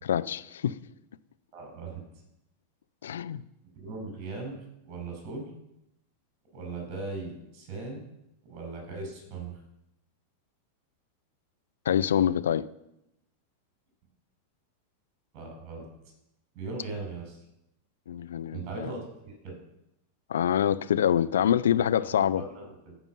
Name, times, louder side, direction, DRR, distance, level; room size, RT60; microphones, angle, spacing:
voice 1, 0.0-0.8 3.0-3.4 11.9-12.7 18.1-18.9 20.3-22.4, left 9 dB, 65° left, 13 dB, 0.5 m, -25 dB
voice 2, 1.5-2.0 3.7-5.5 6.5-8.0 8.4-9.6 15.3-15.9 16.5-17.4 18.5-19.6 22.0-22.1 22.3-23.0, right 3 dB, 40° right, 2 dB, 5.4 m, -39 dB
14.0 x 5.3 x 7.3 m, 0.86 s
figure-of-eight pair, 90°, 0 cm